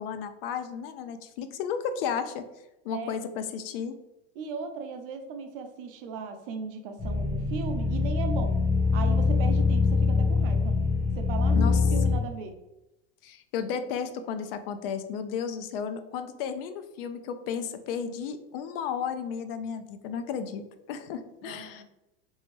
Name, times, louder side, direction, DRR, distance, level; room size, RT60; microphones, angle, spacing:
voice 1, 0.0-2.4 2.8-4.0 11.5-11.8 13.2-21.8, left 7 dB, 65° left, 9 dB, 0.5 m, -33 dB
voice 2, 4.4-8.6 8.9-10.8 11.1-11.6 11.9-12.6 21.4-21.8, right 5 dB, 60° right, 6 dB, 0.6 m, -37 dB
sound 1, 7.0-12.1, left 4 dB, 10° left, 0.6 m, -24 dB
3.3 x 2.7 x 3.1 m, 0.93 s
supercardioid pair, 155°, 31 cm